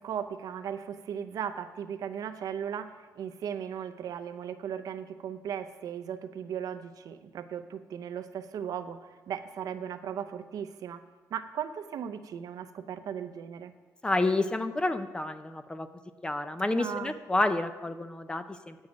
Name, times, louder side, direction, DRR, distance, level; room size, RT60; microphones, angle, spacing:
voice 1, 0.0-11.0 11.3-13.7 16.7-17.1, right 8 dB, 70° right, 9 dB, 0.6 m, -37 dB
voice 2, 14.0-15.9 16.2-18.8, left 2 dB, 15° left, 10 dB, 0.4 m, -29 dB
8.8 x 6.3 x 7.3 m, 1.3 s
cardioid pair, 140°, 7 cm